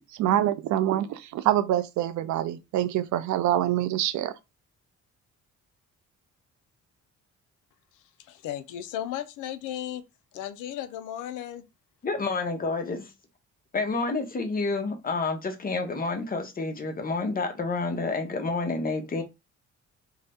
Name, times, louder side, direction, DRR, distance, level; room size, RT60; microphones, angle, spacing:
voice 1, 0.2-4.3, right 12 dB, 75° right, 0.5 m, -25 dB
voice 2, 8.3-10.0 10.3-11.6, left 11 dB, 85° left, 0.5 m, -35 dB
voice 3, 12.0-13.1 13.7-19.2, left 3 dB, 30° left, 0.7 m, -29 dB
2.7 x 2.1 x 3.4 m
cardioid pair, 90°, 30 cm